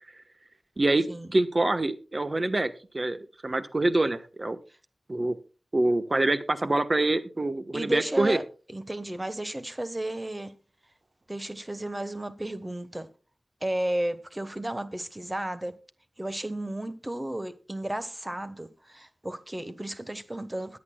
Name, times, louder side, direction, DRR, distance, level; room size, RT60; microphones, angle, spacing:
voice 1, 0.8-4.6 5.1-5.4 5.7-8.4, right 2 dB, 35° right, 1.2 m, -26 dB
voice 2, 7.7-8.4 8.7-10.5 11.3-13.1 13.6-15.8 16.2-20.8, right 1 dB, 20° right, 1.3 m, -33 dB
21.0 x 8.4 x 2.3 m
wide cardioid pair, 85°, 0 cm